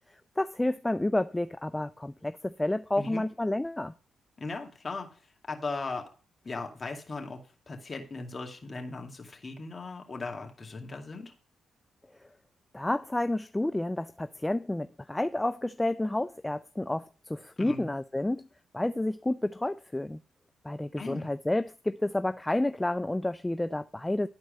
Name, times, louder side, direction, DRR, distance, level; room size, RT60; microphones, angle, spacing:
voice 1, 0.1-3.9 12.2-12.3 12.7-18.5 18.7-20.2 20.6-24.3, left 1 dB, 15° left, 0.4 m, -30 dB
voice 2, 4.4-5.1 5.5-6.1 6.4-7.4 7.7-11.3 17.6-17.9 21.0-21.3, left 3 dB, 40° left, 2.3 m, -37 dB
12.0 x 4.5 x 5.2 m
hypercardioid pair, 40°, 0 cm